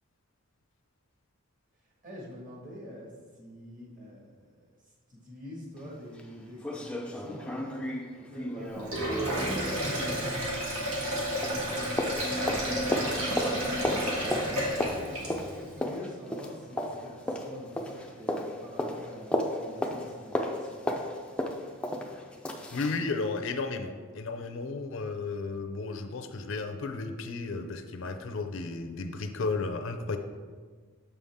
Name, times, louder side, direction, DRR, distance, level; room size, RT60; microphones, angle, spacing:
voice 1, 2.0-4.3 4.6-4.7 5.1-11.9 12.6-20.9, equal, 40° right, -3 dB, 1.7 m, -46 dB
sound 1, 5.8-5.9 6.2-6.3 6.6-11.2 11.4-23.0 23.4-23.5, left 1 dB, 5° left, 0.4 m, -34 dB
Sink (filling or washing), 8.8-15.6, equal, 85° right, 1.6 m, -31 dB
voice 2, 22.7-30.2, left 3 dB, 65° left, 6 dB, 0.5 m, -33 dB
6.9 x 5.5 x 3.5 m, 1.5 s
head